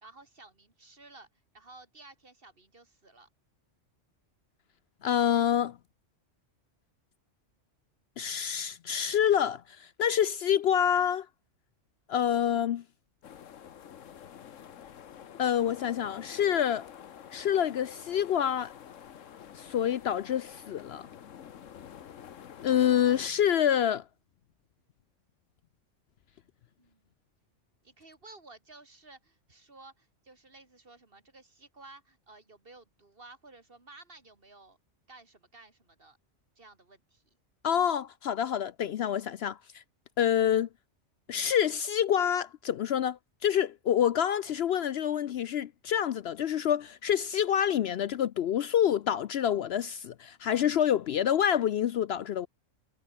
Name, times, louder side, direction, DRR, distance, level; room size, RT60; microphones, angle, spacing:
voice 1, 0.0-1.3 1.5-3.3 26.8-27.1 27.8-34.8 35.1-36.2 36.6-37.2, right 3 dB, 45° right, 3.0 m, -54 dB
voice 2, 5.0-5.8 8.2-11.3 12.1-12.8 15.4-16.9 17.3-18.7 19.6-21.1 22.6-24.0 37.6-39.6 40.2-40.7 41.3-52.5, left 9 dB, 65° left, 0.8 m, -27 dB
sound 1, 13.2-23.3, left 9 dB, 90° left, 1.4 m, -48 dB
omnidirectional pair, 1.3 m